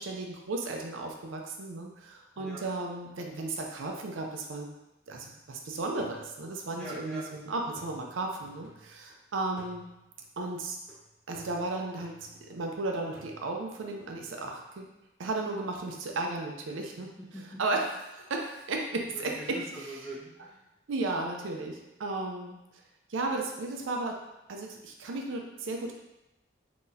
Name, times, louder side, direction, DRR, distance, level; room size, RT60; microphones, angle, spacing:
voice 1, 0.0-4.7 5.1-9.9 10.4-10.8 11.3-14.9 15.2-17.1 17.6-17.9 18.3-19.6 20.9-22.6 23.1-24.2 24.5-25.9, right 2 dB, 85° right, 1 dB, 0.5 m, -34 dB
sound 1, 5.1-5.6 6.0-9.1 9.6-12.7 13.1-14.6, right 3 dB, 15° right, 1.4 m, -57 dB
voice 2, 6.7-7.3 17.2-17.6 19.1-20.6, right 1 dB, 5° left, -10 dB, 0.9 m, -43 dB
3.9 x 2.9 x 2.6 m, 0.94 s
head